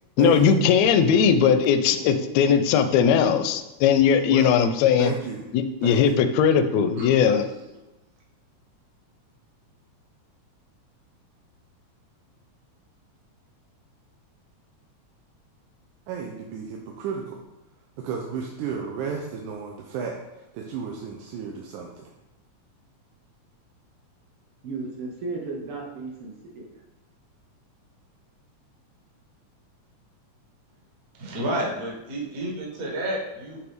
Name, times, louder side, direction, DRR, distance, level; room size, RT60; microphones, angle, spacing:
voice 1, 0.2-5.1 5.5-7.4, left 7 dB, 80° left, 9 dB, 1.6 m, -19 dB
voice 2, 1.9-2.3 24.6-26.7, right 3 dB, 70° right, -1 dB, 1.4 m, -35 dB
voice 3, 5.0-5.4 5.8-6.2 16.1-17.4 18.0-20.2 20.5-22.1, right 6 dB, 85° right, 0 dB, 2.1 m, -33 dB
voice 4, 6.9-7.3 31.2-33.6, right 1 dB, 45° right, -3 dB, 1.3 m, -30 dB
8.4 x 3.7 x 3.5 m, 0.99 s
omnidirectional pair, 3.4 m